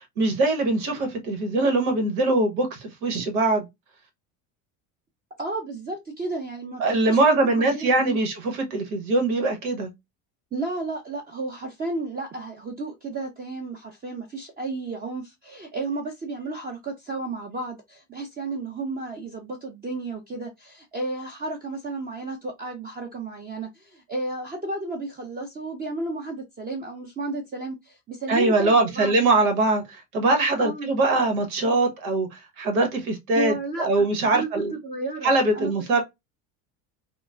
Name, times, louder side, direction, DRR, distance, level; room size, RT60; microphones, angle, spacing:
voice 1, 0.2-3.7 6.8-9.9 28.3-34.7 35.2-36.0, right 2 dB, 85° right, 1.2 m, -22 dB
voice 2, 5.4-8.2 10.5-29.4 30.6-30.9 33.3-34.1 34.3-35.7, right 2 dB, 20° right, 0.7 m, -33 dB
3.7 x 2.1 x 2.3 m
hypercardioid pair, 85°, 42 cm